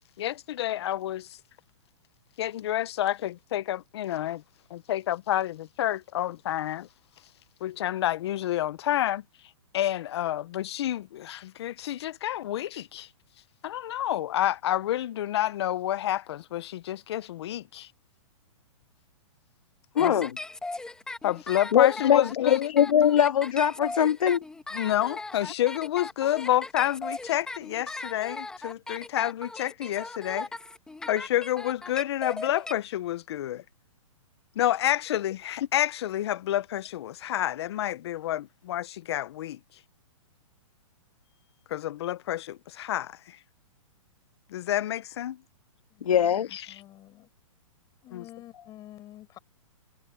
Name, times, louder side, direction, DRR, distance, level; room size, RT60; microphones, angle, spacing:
voice 1, 0.2-1.4 2.4-4.4 4.7-6.9 7.6-9.2 9.7-13.1 13.6-17.9 20.0-20.1 21.2-22.7 24.7-30.5 31.1-33.6 34.6-39.6 41.7-43.4 44.5-45.4 46.5-46.7 48.1-48.2, left 13 dB, 50° left, 0.7 m, -29 dB
voice 2, 19.9-20.4 21.7-24.4 46.0-46.5, left 9 dB, 75° left, 1.6 m, -22 dB
sound 1, 20.0-32.7, left 2 dB, 5° left, 1.9 m, -38 dB
voice 3, 45.9-47.3 48.0-49.4, left 14 dB, 20° left, 7.8 m, -49 dB
hypercardioid pair, 165°, 18 cm